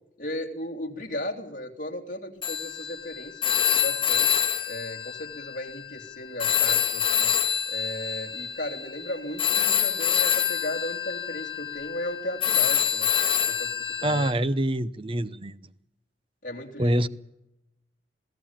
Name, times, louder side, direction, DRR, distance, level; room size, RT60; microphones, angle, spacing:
voice 1, 0.2-4.4 4.7-7.3 7.7-13.1 13.5-14.3 16.4-17.1, left 1 dB, 50° left, 3.1 m, -36 dB
Telephone, 2.4-6.1 6.4-14.3, left 9 dB, 30° left, 2.3 m, -26 dB
voice 2, 14.0-15.7 16.8-17.1, right 1 dB, 30° right, 0.8 m, -25 dB
21.5 x 16.0 x 8.9 m
head